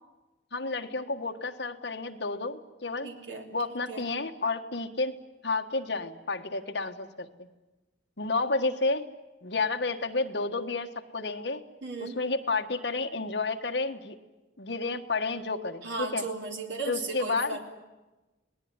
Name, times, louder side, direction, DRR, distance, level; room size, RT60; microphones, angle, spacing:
voice 1, 0.5-3.1 3.5-5.2 5.4-7.5 8.2-9.1 9.4-11.6 12.0-14.1 14.6-16.3 16.9-17.6, left 3 dB, 65° left, 5 dB, 1.6 m, -31 dB
voice 2, 3.0-3.5 3.9-4.1 11.8-12.2 15.8-17.6, right 4 dB, 90° right, 2 dB, 3.7 m, -36 dB
28.0 x 19.5 x 9.7 m, 1.1 s
head